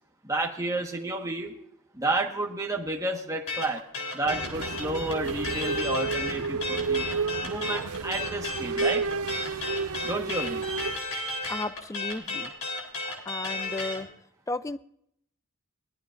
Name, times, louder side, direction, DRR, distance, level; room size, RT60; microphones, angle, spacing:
voice 1, 0.2-1.5 1.9-3.8 4.1-7.1 7.4-9.0 10.0-10.6, right 2 dB, 15° right, 0 dB, 1.4 m, -31 dB
sound 1, 3.5-14.0, left 3 dB, 70° left, 3.8 m, -33 dB
sound 2, 4.3-11.0, right 4 dB, 75° right, 0.7 m, -31 dB
voice 2, 11.5-12.5 13.3-14.1 14.5-14.8, left 2 dB, 15° left, 14 dB, 0.4 m, -34 dB
20.5 x 12.5 x 2.6 m, 0.71 s
head